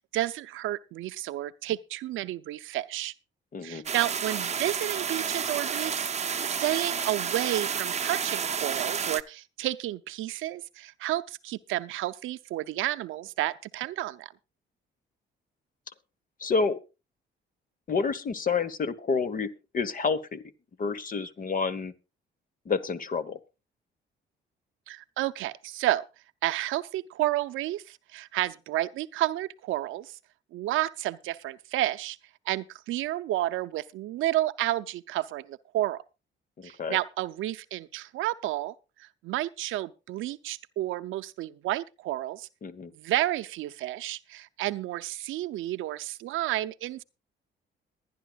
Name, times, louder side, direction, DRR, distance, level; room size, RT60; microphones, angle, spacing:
voice 1, 0.0-3.1 3.6-6.1 6.4-14.3 24.9-26.0 26.4-30.2 30.5-32.2 32.5-36.0 36.6-38.7 39.0-42.5 42.9-47.0, right 15 dB, 85° right, 0.6 m, -31 dB
voice 2, 3.5-3.8 16.4-16.8 17.9-20.4 20.8-21.9 22.6-23.4 36.6-37.0 42.6-42.9, left 5 dB, 45° left, 1.2 m, -29 dB
sound 1, 3.9-9.2, right 7 dB, 35° right, 0.7 m, -30 dB
22.0 x 10.5 x 2.4 m
cardioid pair, 90°, 20 cm